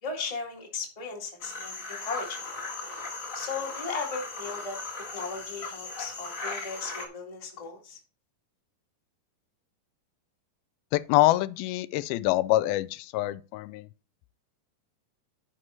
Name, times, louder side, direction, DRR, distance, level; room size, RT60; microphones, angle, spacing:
voice 1, 0.0-2.4 3.3-4.8 5.1-8.0, left 5 dB, 15° left, 1.2 m, -36 dB
sound 1, 1.4-7.1, left 3 dB, 45° left, 1.1 m, -37 dB
voice 2, 10.9-12.9 13.1-13.9, left 17 dB, 90° left, 2.4 m, -25 dB
9.8 x 5.7 x 4.4 m
omnidirectional pair, 4.2 m